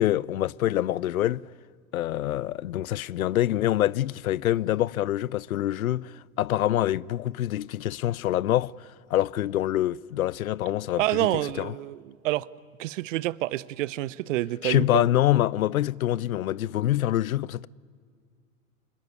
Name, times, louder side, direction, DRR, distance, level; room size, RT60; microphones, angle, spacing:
voice 1, 0.0-1.4 1.9-11.7 14.6-17.7, left 13 dB, 80° left, 0.6 m, -25 dB
voice 2, 11.0-12.5 12.8-15.1, right 16 dB, 65° right, 0.8 m, -28 dB
25.0 x 21.0 x 9.7 m
hypercardioid pair, 95°, 41 cm